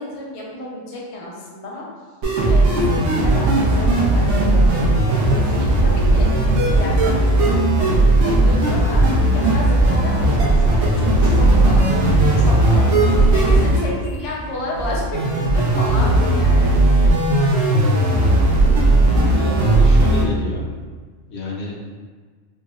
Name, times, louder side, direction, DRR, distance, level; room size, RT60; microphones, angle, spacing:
voice 1, 0.0-1.9 2.5-6.3 6.6-17.1, left 2 dB, 45° left, -4 dB, 0.4 m, -32 dB
sound 1, 2.2-20.2, right 1 dB, 70° right, 1.1 m, -16 dB
voice 2, 19.2-20.7 21.3-21.7, left 2 dB, 65° left, -3 dB, 0.9 m, -29 dB
5.3 x 2.1 x 2.4 m, 1.5 s
omnidirectional pair, 1.3 m